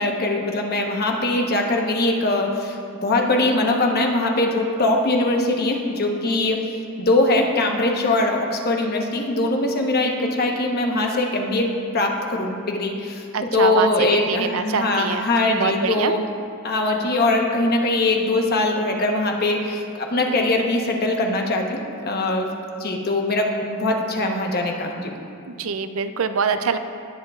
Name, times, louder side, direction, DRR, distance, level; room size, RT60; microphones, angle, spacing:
voice 1, 0.0-2.8 3.0-6.6 7.0-11.7 11.9-13.2 13.5-16.2 16.6-22.5 22.8-25.1, left 2 dB, 50° left, 1 dB, 1.0 m, -21 dB
voice 2, 13.3-13.9 14.3-15.2 15.6-16.1 25.6-26.8, right 6 dB, 75° right, 10 dB, 0.5 m, -24 dB
18.0 x 7.4 x 2.4 m, 2.5 s
head